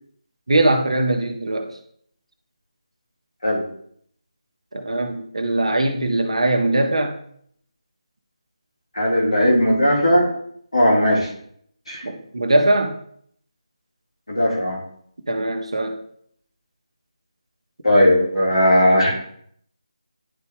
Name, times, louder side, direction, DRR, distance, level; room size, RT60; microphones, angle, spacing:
voice 1, 0.5-1.8 4.7-7.2 12.0-13.0 15.3-16.0, right 1 dB, 60° right, 4 dB, 1.0 m, -21 dB
voice 2, 8.9-10.3 10.7-11.3 11.9-12.0 14.3-14.8 17.8-19.1, equal, 75° left, -3 dB, 2.8 m, -17 dB
10.5 x 4.0 x 3.7 m, 0.66 s
figure-of-eight pair, 160°, 3 cm